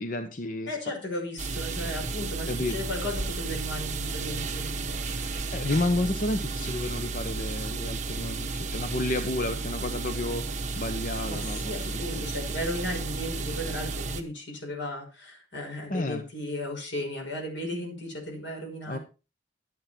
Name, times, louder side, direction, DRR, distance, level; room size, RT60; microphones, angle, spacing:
voice 1, 0.0-0.8 2.5-2.8 5.5-10.5 10.7-12.2 15.9-16.2 18.9-19.0, left 2 dB, 45° left, 8 dB, 0.9 m, -31 dB
voice 2, 0.7-5.4 11.2-19.0, left 1 dB, 85° left, 2 dB, 6.0 m, -35 dB
sound 1, 1.4-14.2, right 3 dB, 40° right, 1.4 m, -33 dB
12.0 x 9.1 x 4.4 m, 0.31 s
head